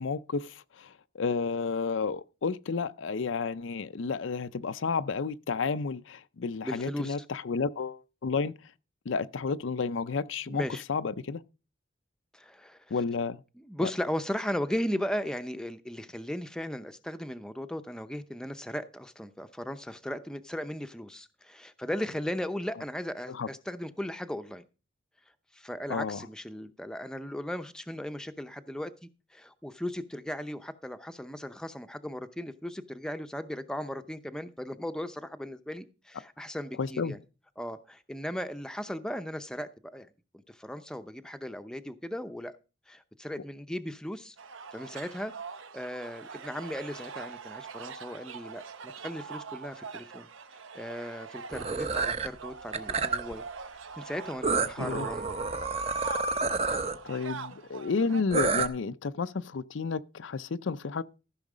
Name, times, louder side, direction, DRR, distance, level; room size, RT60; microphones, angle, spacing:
voice 1, 0.0-8.5 9.1-10.6 10.9-11.4 12.9-13.4 13.8-13.9 23.3-23.5 25.9-26.2 36.8-37.2 54.8-55.1 57.0-61.0, left 4 dB, 75° left, 0.5 m, -31 dB
voice 2, 6.6-7.3 10.5-10.8 12.3-12.9 13.6-24.6 25.5-28.9 29.3-37.2 37.6-40.1 40.3-42.5 42.9-44.4 44.7-45.3 45.7-53.4 54.0-55.3, equal, 5° left, 0.7 m, -37 dB
sound 1, 44.4-58.2, right 5 dB, 85° right, 0.9 m, -43 dB
Creature Screeching, 51.5-52.3 52.7-53.3 54.4-57.0 58.3-58.7, right 4 dB, 30° right, 0.8 m, -29 dB
14.5 x 6.3 x 5.0 m
head